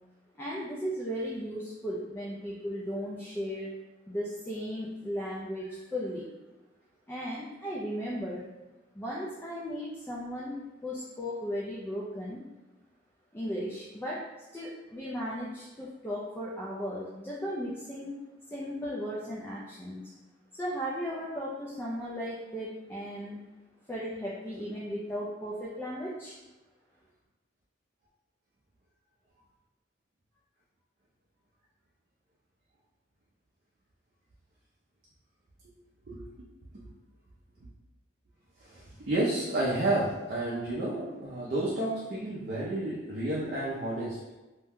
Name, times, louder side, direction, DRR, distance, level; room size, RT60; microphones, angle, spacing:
voice 1, 0.4-3.7 4.1-6.3 7.1-8.4 9.0-12.4 13.3-14.2 14.5-18.1 18.5-20.1 20.5-23.4 23.9-26.4, equal, 10° left, -6 dB, 0.3 m, -36 dB
voice 2, 38.6-44.2, right 1 dB, 50° right, -6 dB, 0.5 m, -31 dB
2.7 x 2.1 x 3.5 m, 1.1 s
head